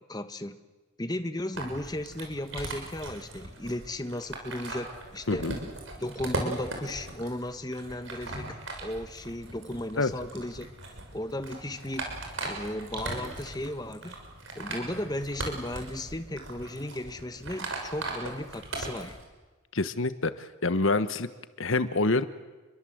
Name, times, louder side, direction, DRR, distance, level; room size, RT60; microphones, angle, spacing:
voice 1, 0.1-0.6 1.0-5.5 6.0-8.6 8.8-10.7 11.1-12.0 12.4-14.1 14.5-19.2, left 1 dB, 20° left, 9 dB, 1.2 m, -35 dB
sound 1, 1.5-19.2, right 2 dB, 65° right, 6.7 m, -39 dB
voice 2, 19.7-21.3 21.6-22.2, left 3 dB, 65° left, 12 dB, 1.2 m, -26 dB
30.0 x 23.0 x 7.9 m, 1.2 s
head